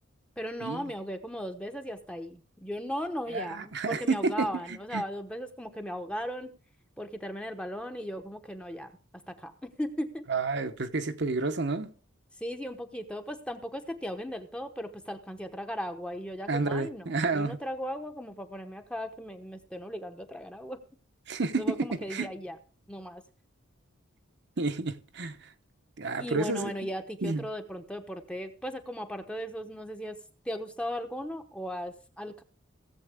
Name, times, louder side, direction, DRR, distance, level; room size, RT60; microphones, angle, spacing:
voice 1, 0.4-6.5 7.0-8.9 9.3-10.3 12.4-20.8 21.6-22.6 22.9-23.2 26.2-30.2 30.4-32.4, equal, 5° left, 0.9 m, -37 dB
voice 2, 3.3-5.0 10.3-11.9 16.5-17.6 21.3-22.3 24.6-25.5 26.0-26.9 27.2-27.4, right 3 dB, 55° right, 0.9 m, -30 dB
17.0 x 7.7 x 3.6 m
head